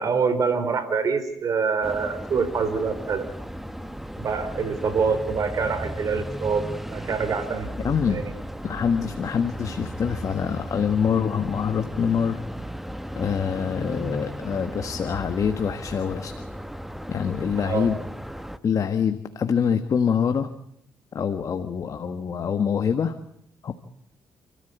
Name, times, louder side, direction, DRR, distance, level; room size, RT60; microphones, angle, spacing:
voice 1, 0.0-3.2 4.2-6.6 6.9-7.7 8.1-8.3 17.6-17.9, right 5 dB, 55° right, 11 dB, 4.0 m, -25 dB
sound 1, 1.8-18.6, equal, 5° right, 1.2 m, -35 dB
voice 2, 7.8-8.2 8.6-12.4 13.1-16.3 17.1-18.0 18.6-20.5 21.1-23.1 23.6-23.7, left 7 dB, 55° left, 8 dB, 1.4 m, -25 dB
29.5 x 14.0 x 8.2 m, 0.74 s
cardioid pair, 80°, 7 cm